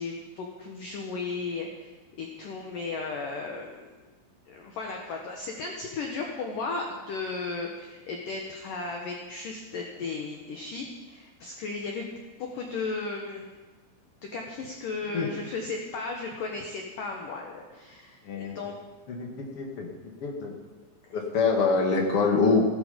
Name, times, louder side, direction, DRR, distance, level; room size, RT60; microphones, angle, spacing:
voice 1, 0.0-1.9 2.2-3.9 4.5-12.1 12.5-13.5 14.3-18.7, left 4 dB, 75° left, 1 dB, 2.0 m, -35 dB
voice 2, 18.2-18.6 19.1-19.9 20.2-20.5 21.1-22.7, left 4 dB, 60° left, 0 dB, 1.5 m, -25 dB
17.0 x 13.5 x 5.2 m, 1.3 s
omnidirectional pair, 5.9 m